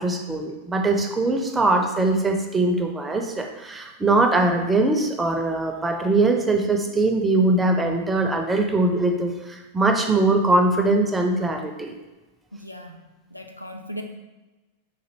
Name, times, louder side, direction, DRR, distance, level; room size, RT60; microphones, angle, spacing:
voice 1, 0.0-11.9, right 2 dB, 10° right, 3 dB, 0.4 m, -21 dB
voice 2, 12.5-13.0 13.3-14.0, equal, 90° left, 4 dB, 0.3 m, -37 dB
3.9 x 2.6 x 2.9 m, 1.1 s
figure-of-eight pair, 90°, 0 cm